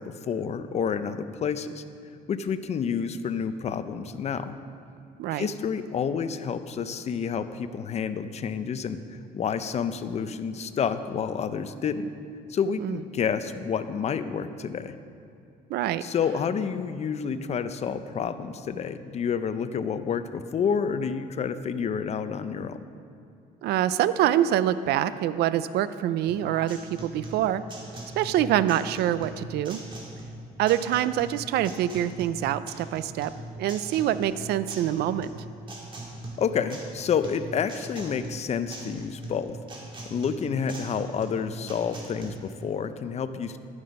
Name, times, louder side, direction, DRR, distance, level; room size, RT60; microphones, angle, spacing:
voice 1, 0.0-1.8 2.3-4.6 5.3-12.1 12.5-15.0 16.0-22.8 36.4-39.6 40.1-43.6, left 6 dB, 40° left, 11 dB, 0.6 m, -29 dB
voice 2, 15.7-16.0 23.6-27.6 28.2-29.8 30.6-33.3 33.6-35.3, right 12 dB, 75° right, 14 dB, 0.5 m, -25 dB
sound 1, 26.3-42.3, right 1 dB, 30° right, 2.4 m, -41 dB
11.5 x 9.7 x 5.3 m, 2.5 s
cardioid pair, 110°, 17 cm